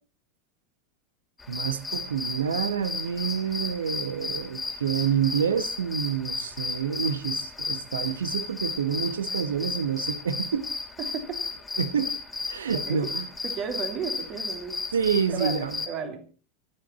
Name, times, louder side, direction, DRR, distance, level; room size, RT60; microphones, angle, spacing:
sound 1, 1.4-15.9, left 3 dB, 10° left, 2.6 m, -34 dB
voice 1, 1.5-10.7 11.8-12.1 12.5-13.3 14.9-15.8, right 7 dB, 70° right, 1.3 m, -28 dB
voice 2, 11.0-11.4 12.7-13.0 13.4-14.8 15.3-16.2, right 6 dB, 40° right, 3.3 m, -34 dB
25.5 x 9.1 x 4.3 m
figure-of-eight pair, 85°, 0 cm